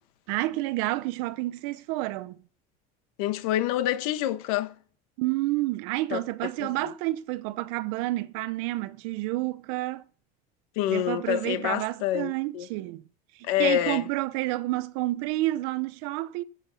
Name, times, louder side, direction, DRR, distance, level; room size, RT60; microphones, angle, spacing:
voice 1, 0.3-2.4 5.2-10.0 10.9-13.0 13.4-16.4, right 18 dB, 60° right, 0.8 m, -29 dB
voice 2, 3.2-4.7 6.1-6.2 6.6-6.9 10.8-12.7 13.5-14.1, left 12 dB, 70° left, 1.6 m, -27 dB
15.0 x 7.3 x 5.5 m
cardioid pair, 175°, 19 cm